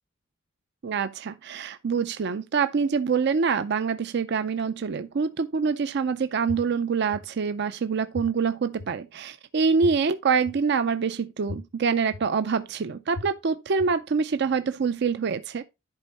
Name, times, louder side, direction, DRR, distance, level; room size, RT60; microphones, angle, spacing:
voice 1, 0.8-15.6, right 5 dB, 55° right, 0.5 m, -25 dB
sound 1, 6.5-6.6 7.1-7.2 8.1-8.2 8.8-8.9 9.8-9.9 10.5-10.6 11.5-11.6 12.1-12.2 13.1-13.2 13.8-13.9, left 2 dB, 85° left, 0.9 m, -34 dB
10.5 x 4.5 x 4.1 m
head